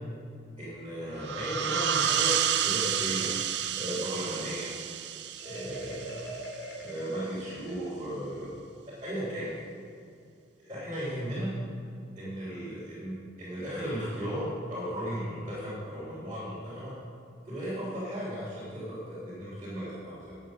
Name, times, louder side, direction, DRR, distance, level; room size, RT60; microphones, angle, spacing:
voice 1, 0.6-3.3 3.8-4.7 5.4-6.2 6.8-8.5 8.9-9.5 10.6-11.6 12.1-17.0 17.4-20.4, equal, 25° right, -10 dB, 3.2 m, -36 dB
sound 1, 1.2-6.5, right 9 dB, 60° right, 0.5 m, -30 dB
Marimba xylophone, 5.4-8.2, right 1 dB, 75° left, 2.5 m, -43 dB
11.5 x 8.3 x 6.4 m, 2.4 s
head